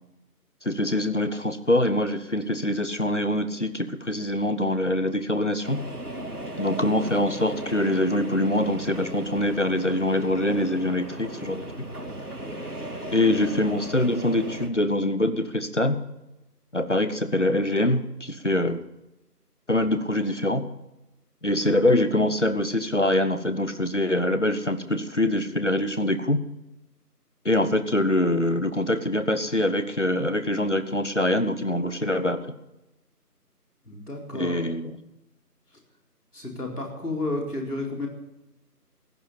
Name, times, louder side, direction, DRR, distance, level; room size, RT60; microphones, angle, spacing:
voice 1, 0.6-5.8 6.6-11.7 13.1-16.0 16.7-18.8 19.7-20.6 21.4-26.4 27.4-32.5 34.4-34.9, left 1 dB, 45° left, 11 dB, 1.0 m, -24 dB
sound 1, 5.6-14.7, right 1 dB, 65° right, 2.5 m, -36 dB
voice 2, 33.9-34.6 36.3-38.1, left 2 dB, 70° left, 0 dB, 4.3 m, -31 dB
15.0 x 10.0 x 5.6 m, 0.95 s
figure-of-eight pair, 180°, 48 cm